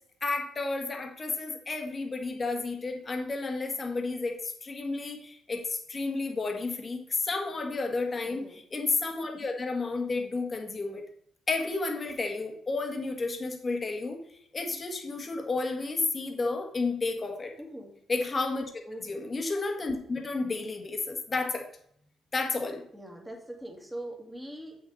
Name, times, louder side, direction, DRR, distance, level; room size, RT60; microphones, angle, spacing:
voice 1, 0.2-11.0 11.5-14.2 14.5-17.5 18.1-18.6 19.0-21.7 22.3-22.8, left 3 dB, 30° left, 3 dB, 1.6 m, -31 dB
voice 2, 8.2-8.6 17.6-17.9 18.9-19.2 22.9-24.8, right 1 dB, 5° right, 0 dB, 2.0 m, -42 dB
7.8 x 6.3 x 4.1 m, 0.68 s
cardioid pair, 90°, 0 cm